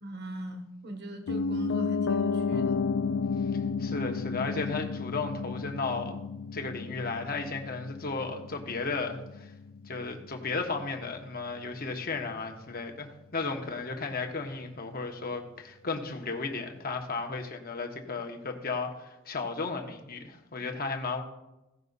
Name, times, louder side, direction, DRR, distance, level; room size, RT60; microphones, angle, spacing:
voice 1, 0.0-2.8, right 1 dB, 55° right, 5 dB, 1.3 m, -40 dB
Piano, 1.3-11.3 11.6-11.7, left 4 dB, 70° left, 0.5 m, -32 dB
voice 2, 3.8-6.2 6.5-9.5 9.9-21.2, left 4 dB, 50° left, 3 dB, 1.3 m, -34 dB
16.0 x 5.7 x 4.1 m, 0.95 s
head